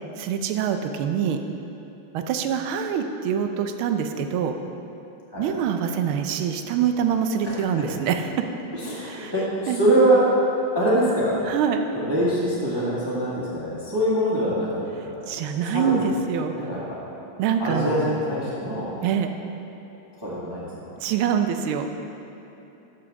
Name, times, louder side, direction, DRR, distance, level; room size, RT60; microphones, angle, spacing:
voice 1, 0.2-1.4 2.1-4.5 5.4-8.3 9.0-9.3 9.7-10.0 11.5-11.9 15.3-16.5 17.4-18.1 19.0-19.4 20.9-21.9, right 7 dB, 80° right, 7 dB, 1.4 m, -25 dB
voice 2, 7.4-7.8 8.7-10.2 10.7-11.4 11.9-15.3 15.7-15.9 16.5-17.0 17.6-18.9 20.2-20.9, right 1 dB, 15° right, -9 dB, 1.5 m, -24 dB
12.0 x 7.1 x 3.6 m, 3.0 s
omnidirectional pair, 2.4 m